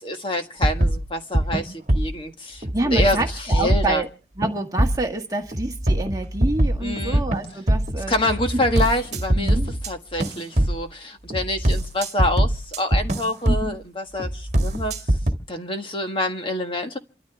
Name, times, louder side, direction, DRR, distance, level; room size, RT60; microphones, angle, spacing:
voice 1, 0.0-4.0 6.8-7.2 8.1-9.6 9.9-15.0 15.5-17.0, left 1 dB, 30° left, 1.5 m, -26 dB
sound 1, 0.6-2.2 2.6-4.0 4.4-5.1 5.5-9.9 10.2-10.9 11.3-13.8 14.2-15.3, right 1 dB, 40° right, 1.9 m, -23 dB
voice 2, 2.7-4.1 4.4-8.1 8.5-8.6 9.4-9.7 13.5-13.8, right 2 dB, 20° right, 1.5 m, -27 dB
28.0 x 13.5 x 3.5 m
head